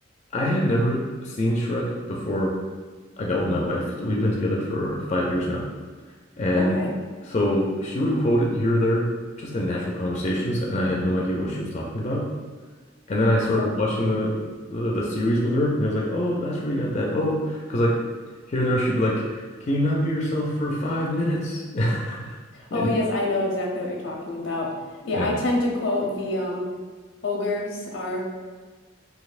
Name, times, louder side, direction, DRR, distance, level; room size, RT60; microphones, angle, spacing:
voice 1, 0.3-2.6 3.2-5.7 6.4-6.8 7.2-9.1 9.4-12.3 13.1-18.0 18.5-22.4 22.7-22.9 25.1-25.3, left 1 dB, 35° left, -2 dB, 0.4 m, -24 dB
voice 2, 22.5-24.7 25.1-26.7 27.2-28.2, left 2 dB, 80° left, -1 dB, 0.7 m, -27 dB
4.0 x 2.8 x 2.4 m, 1.5 s
head